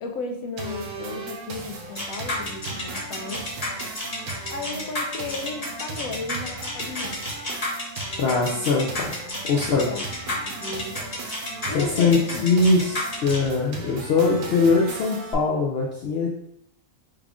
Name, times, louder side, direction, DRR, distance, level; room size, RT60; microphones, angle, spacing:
voice 1, 0.0-3.5 4.5-7.3 9.5-10.0 10.3-11.1 11.7-12.6, left 3 dB, 80° left, 4 dB, 1.0 m, -35 dB
sound 1, 0.6-15.3, right 3 dB, 70° right, 0.9 m, -37 dB
sound 2, 1.9-13.5, left 2 dB, 35° left, 0.8 m, -31 dB
voice 2, 8.2-9.9 11.7-16.3, left 4 dB, 60° left, -2 dB, 0.7 m, -22 dB
3.4 x 2.4 x 3.5 m, 0.75 s
omnidirectional pair, 1.4 m